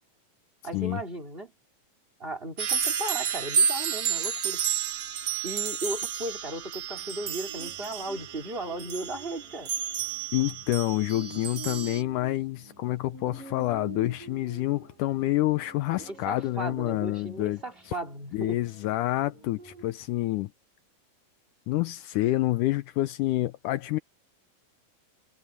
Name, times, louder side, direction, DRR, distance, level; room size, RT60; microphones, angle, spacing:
voice 1, 0.6-1.5 2.2-4.6 5.4-9.7 16.0-18.6, right 1 dB, 15° right, 3.0 m, -36 dB
sound 1, 2.6-12.0, right 8 dB, 50° right, 1.8 m, -31 dB
sound 2, 6.9-19.9, right 3 dB, 70° right, 8.9 m, -49 dB
voice 2, 10.3-17.6 18.3-20.5 21.7-24.0, left 16 dB, 80° left, 2.1 m, -28 dB
omnidirectional pair, 3.9 m